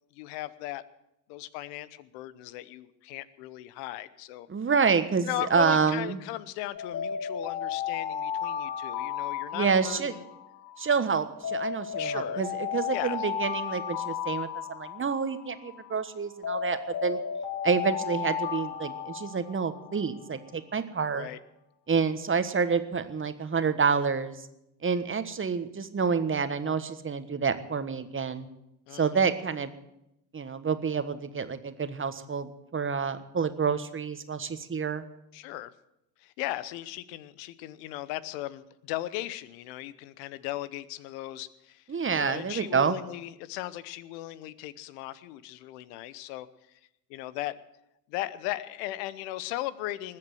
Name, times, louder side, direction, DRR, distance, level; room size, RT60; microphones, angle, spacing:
voice 1, 0.1-0.8 1.3-4.5 5.2-10.2 12.0-12.4 12.9-13.2 21.1-21.4 28.9-29.3 35.3-35.7 36.2-41.8 42.1-46.5 47.1-47.5 48.1-50.2, left 15 dB, 70° left, 17 dB, 1.0 m, -37 dB
voice 2, 4.5-6.2 9.5-10.1 10.8-17.2 17.6-21.3 21.9-24.3 24.8-28.5 28.9-29.7 30.3-35.1 41.9-43.0, right 5 dB, 25° right, 10 dB, 1.4 m, -28 dB
Alarm, 6.7-10.9 11.4-15.9 16.4-20.2, left 8 dB, 40° left, 4.9 m, -34 dB
20.0 x 7.7 x 7.8 m, 0.86 s
hypercardioid pair, 65°, 50 cm